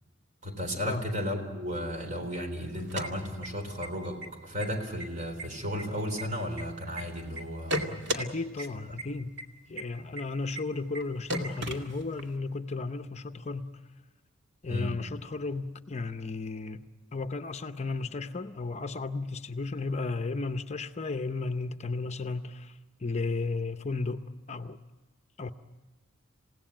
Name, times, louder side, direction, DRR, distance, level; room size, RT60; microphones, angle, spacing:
voice 1, 0.4-8.0 8.6-9.0 14.7-14.9, equal, 40° right, 4.0 m, -34 dB
sound 1, 2.7-3.9 4.2-4.3 4.6-5.1 5.4-7.0 7.4-8.3 8.6-8.7 9.0-9.1 9.4-9.5 9.8-9.9 10.2-10.3 10.6-10.7 11.0-11.1 11.3-12.3, right 1 dB, 60° right, 2.3 m, -34 dB
voice 2, 8.1-9.4 9.7-13.7 14.6-16.8 17.1-24.8 25.4-25.5, left 3 dB, 35° left, 0.7 m, -34 dB
28.0 x 17.5 x 8.9 m
head